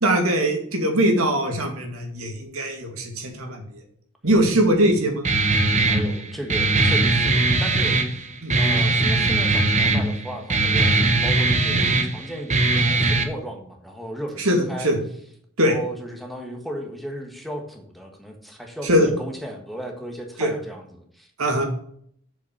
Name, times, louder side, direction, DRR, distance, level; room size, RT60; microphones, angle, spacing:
voice 1, 0.0-3.8 4.2-5.2 8.4-8.6 11.7-11.9 14.4-15.0 15.6-15.8 18.8-19.1 20.4-20.5 21.4-21.7, right 1 dB, 75° right, 3 dB, 2.2 m, -21 dB
Guitar, 5.2-13.2, right 2 dB, 35° right, 1.1 m, -20 dB
voice 2, 5.9-8.0 8.5-14.9 15.6-21.3, equal, ahead, 2 dB, 1.3 m, -35 dB
6.9 x 5.8 x 7.0 m, 0.64 s
head